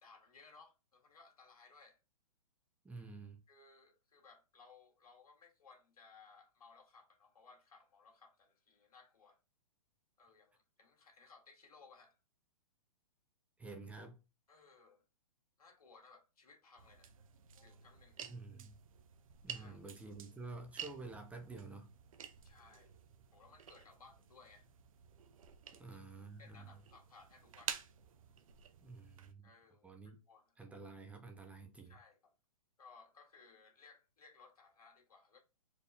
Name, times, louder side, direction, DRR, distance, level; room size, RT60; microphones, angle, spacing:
voice 1, 0.0-2.0 3.5-9.4 10.2-12.2 14.5-15.0 15.6-17.1 17.6-18.2 19.5-19.8 22.4-22.9 23.3-24.7 25.7-25.9 26.4-27.8 29.4-30.8 31.8-32.3 32.8-35.4, left 4 dB, 80° left, 1.7 m, -62 dB
voice 2, 2.8-3.4 13.6-14.2 18.3-18.8 19.4-21.9 25.8-26.7 28.8-29.4 29.8-30.2 30.6-32.0, right 3 dB, 5° right, 0.5 m, -50 dB
sound 1, 16.8-29.3, right 8 dB, 65° right, 0.7 m, -51 dB
4.5 x 3.3 x 2.6 m
hypercardioid pair, 130°, 19 cm